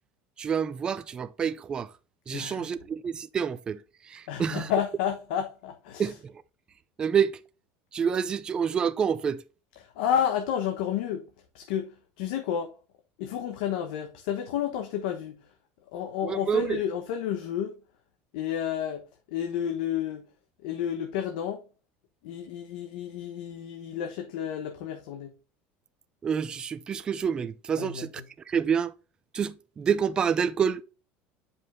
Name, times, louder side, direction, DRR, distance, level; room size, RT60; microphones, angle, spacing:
voice 1, 0.4-1.9 2.3-4.7 6.0-6.3 7.0-7.4 7.9-9.4 16.2-16.8 26.2-28.1 28.5-28.9 29.3-30.8, right 7 dB, 15° right, 0.4 m, -28 dB
voice 2, 2.3-2.6 4.3-6.1 9.8-11.2 11.5-12.7 13.2-15.4 15.9-17.7 18.3-19.0 19.3-20.3 20.6-21.6 22.2-25.3 27.8-28.0, left 9 dB, 80° left, 1.1 m, -31 dB
9.6 x 5.3 x 2.6 m
cardioid pair, 180°, 5 cm